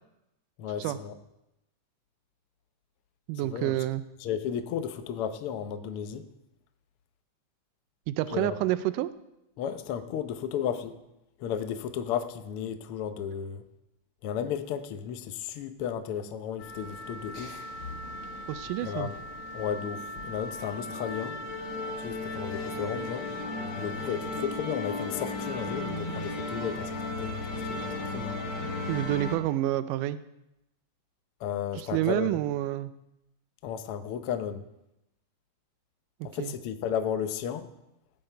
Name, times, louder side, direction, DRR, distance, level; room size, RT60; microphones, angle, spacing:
voice 1, 0.6-1.1 3.4-3.7 4.2-6.3 8.3-8.6 9.6-10.9 11.4-13.6 14.2-17.6 18.8-19.2 19.5-21.4 22.0-23.3 23.7-28.3 31.4-32.4 33.6-34.6 36.2-37.7, left 8 dB, 85° left, 8 dB, 1.2 m, -34 dB
voice 2, 3.3-4.0 8.1-9.1 18.5-19.1 28.9-30.2 31.8-32.9 36.4-36.5, right 14 dB, 85° right, 14 dB, 2.1 m, -28 dB
sound 1, 16.6-29.4, left 2 dB, 55° left, 1.7 m, -36 dB
17.5 x 7.9 x 4.5 m, 0.89 s
omnidirectional pair, 3.7 m